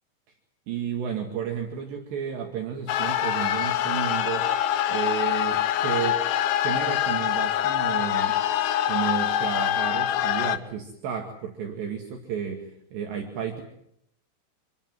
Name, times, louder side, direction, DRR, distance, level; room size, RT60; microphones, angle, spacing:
voice 1, 0.7-4.5 4.9-6.2 6.6-8.4 8.9-13.6, right 7 dB, 65° right, 3 dB, 4.1 m, -32 dB
sound 1, 2.9-10.6, left 11 dB, 75° left, 2.2 m, -25 dB
26.5 x 21.0 x 7.7 m, 0.73 s
omnidirectional pair, 5.8 m